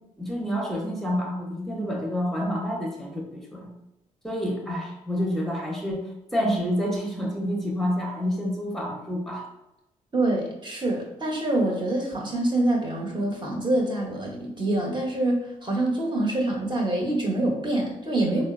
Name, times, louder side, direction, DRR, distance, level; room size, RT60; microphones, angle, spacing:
voice 1, 0.2-3.7 4.2-9.4, equal, ahead, -1 dB, 0.9 m, -28 dB
voice 2, 10.1-18.4, right 1 dB, 30° right, -2 dB, 1.0 m, -25 dB
3.6 x 2.0 x 2.5 m, 0.90 s
supercardioid pair, 55°, 16 cm